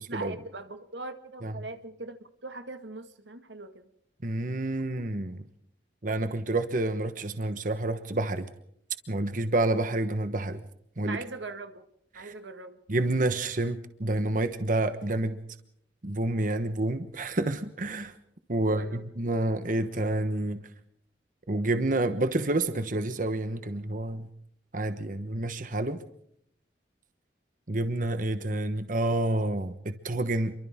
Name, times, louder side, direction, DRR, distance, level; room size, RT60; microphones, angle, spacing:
voice 1, 0.1-3.9 11.1-11.8 12.2-12.8 18.6-19.0, right 3 dB, 90° right, 1.8 m, -41 dB
voice 2, 4.2-5.4 6.0-8.5 9.1-10.6 11.0-11.2 12.1-12.3 12.9-15.4 16.0-18.1 18.5-20.6 21.5-24.3 24.7-26.0 27.7-30.5, right 2 dB, 50° right, 1.2 m, -29 dB
30.0 x 23.5 x 3.7 m
head